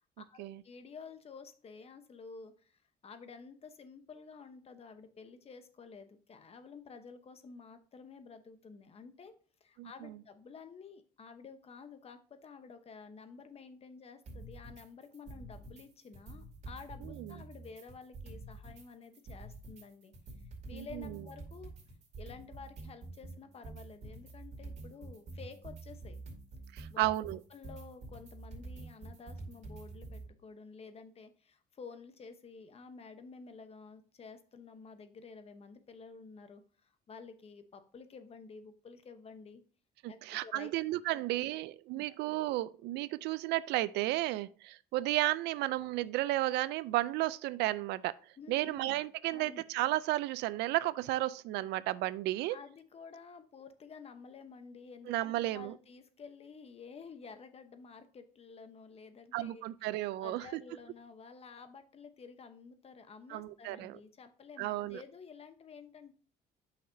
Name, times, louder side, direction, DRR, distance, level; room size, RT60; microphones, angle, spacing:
voice 1, 0.2-9.3 9.6-20.1 20.4-21.7 22.2-26.2 26.9-27.1 27.5-39.6 40.1-40.7 41.1-41.2 41.9-42.2 48.4-49.0 49.3-49.6 52.5-59.9 60.2-66.1, left 5 dB, 35° left, 0.9 m, -51 dB
voice 2, 9.8-10.2 17.0-17.4 20.7-21.2 26.7-27.4 40.0-48.2 48.5-52.6 55.1-55.7 59.3-60.5 63.3-64.0 64.6-65.0, right 16 dB, 85° right, 0.4 m, -33 dB
sound 1, 14.3-14.8 15.1-15.8 16.1-18.8 19.1-30.3, right 2 dB, 45° right, 2.5 m, -47 dB
8.3 x 5.9 x 2.7 m
cardioid pair, 110°, 17 cm